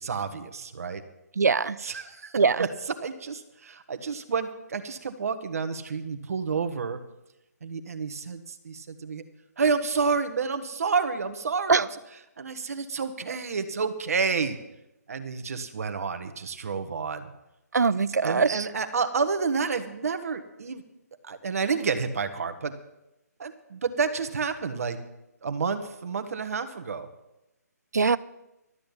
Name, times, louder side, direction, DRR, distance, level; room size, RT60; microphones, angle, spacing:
voice 1, 0.0-1.0 1.8-2.7 3.0-7.0 7.6-9.2 9.6-11.9 12.4-14.6 15.1-17.3 18.2-20.8 21.2-22.7 23.4-25.0 25.4-27.1, right 5 dB, 60° right, 9 dB, 1.3 m, -29 dB
voice 2, 1.4-1.8 2.4-2.7 11.7-11.8 17.7-18.7 27.9-28.2, right 5 dB, 75° right, 18 dB, 0.6 m, -22 dB
12.5 x 7.7 x 8.8 m, 0.92 s
figure-of-eight pair, 145°, 9 cm